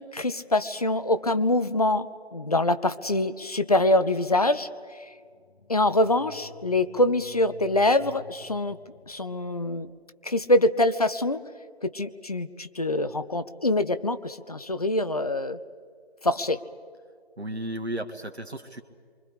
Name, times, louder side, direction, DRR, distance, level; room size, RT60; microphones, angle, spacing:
voice 1, 0.0-2.1 2.3-4.7 5.7-8.8 9.1-9.9 10.2-11.4 11.8-15.6 16.2-16.6, left 1 dB, 35° left, 12 dB, 0.7 m, -24 dB
sound 1, 5.2-10.1, left 2 dB, 50° left, 1.9 m, -51 dB
voice 2, 17.4-18.8, right 1 dB, 90° right, 6 dB, 1.8 m, -34 dB
29.0 x 24.5 x 5.0 m, 2.1 s
figure-of-eight pair, 165°, 32 cm